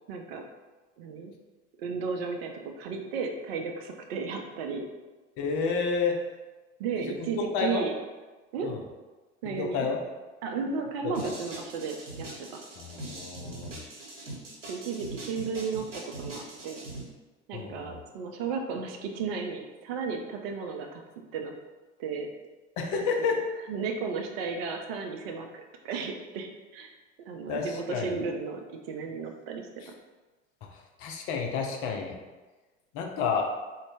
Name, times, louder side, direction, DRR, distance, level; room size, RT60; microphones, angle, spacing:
voice 1, 0.1-0.4 1.0-1.3 1.8-4.9 6.8-7.9 8.5-8.8 9.4-9.9 10.4-12.6 14.7-16.8 17.5-21.0 21.3-21.5 22.0-22.3 23.2-23.3 23.7-29.9, right 5 dB, 55° right, 3 dB, 0.6 m, -34 dB
voice 2, 5.4-6.2 7.0-7.8 8.6-8.8 9.5-10.0 11.2-11.3 12.8-13.8 17.5-17.9 22.8-23.4 27.5-28.2 30.7-32.2 32.9-33.4, left 5 dB, 40° left, 2 dB, 0.6 m, -30 dB
sound 1, 11.1-17.0, right 2 dB, 75° right, 1.0 m, -41 dB
3.8 x 2.1 x 3.3 m, 1.2 s
figure-of-eight pair, 70°, 37 cm